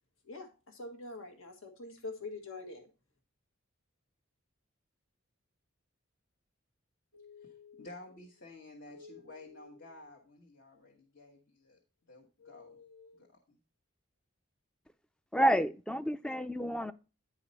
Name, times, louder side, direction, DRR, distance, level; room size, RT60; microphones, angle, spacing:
voice 1, 0.3-2.9, left 2 dB, 75° left, 1.7 m, -44 dB
voice 2, 7.1-11.8 12.1-13.6, left 2 dB, 55° left, 1.4 m, -52 dB
voice 3, 15.3-16.9, equal, 5° left, 0.3 m, -29 dB
10.0 x 4.9 x 4.1 m
head